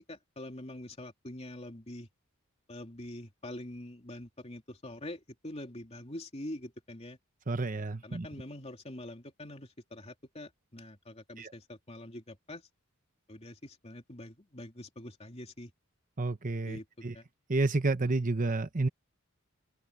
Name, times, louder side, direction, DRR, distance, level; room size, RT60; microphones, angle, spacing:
voice 1, 0.0-2.1 2.7-7.2 8.0-12.6 13.3-15.7 16.7-16.8 17.1-17.3, left 1 dB, 30° left, 3.0 m, -45 dB
voice 2, 7.5-8.3 11.4-11.5 16.2-17.2 17.5-18.9, right 2 dB, 40° right, 0.9 m, -30 dB
head